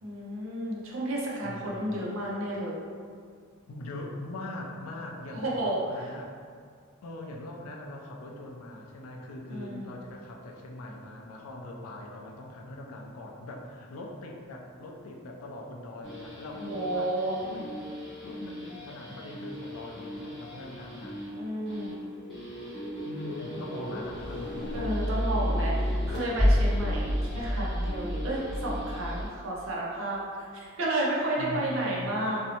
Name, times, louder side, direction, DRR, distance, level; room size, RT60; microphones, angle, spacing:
voice 1, 0.0-2.8 5.3-6.1 9.5-9.9 16.7-17.4 21.3-22.0 23.5-24.0 24.7-30.2 30.8-32.4, right 1 dB, 65° right, -4 dB, 0.5 m, -32 dB
voice 2, 1.4-2.0 3.7-6.3 7.0-17.1 17.5-17.7 18.2-21.2 23.0-25.0 31.4-32.2, left 1 dB, 80° left, 0 dB, 0.4 m, -41 dB
sound 1, 16.0-29.3, equal, ahead, 0.9 m, -32 dB
2.6 x 2.0 x 2.8 m, 2.1 s
head